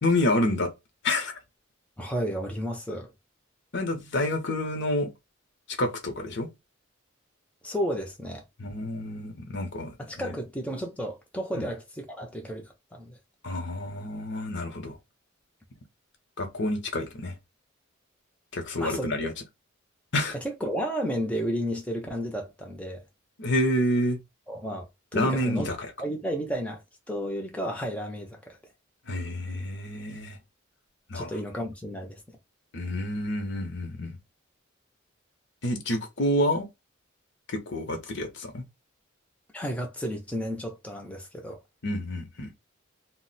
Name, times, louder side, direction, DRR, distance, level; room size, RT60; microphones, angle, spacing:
voice 1, 0.0-0.7 1.0-1.4 3.7-5.1 5.7-6.5 8.6-10.0 11.5-11.6 13.4-15.0 16.4-17.4 18.5-19.3 20.1-20.4 23.4-24.2 25.1-25.9 29.1-30.4 31.1-31.3 32.7-34.2 35.6-36.7 37.5-38.6 41.8-42.5, left 1 dB, 60° left, 0.7 m, -28 dB
voice 2, 2.0-3.1 7.6-8.4 10.0-13.2 18.8-19.1 20.6-23.0 24.5-24.9 25.1-25.7 26.0-26.8 27.1-28.6 31.1-32.2 39.5-41.6, equal, 5° left, 0.5 m, -32 dB
2.5 x 2.1 x 3.9 m
head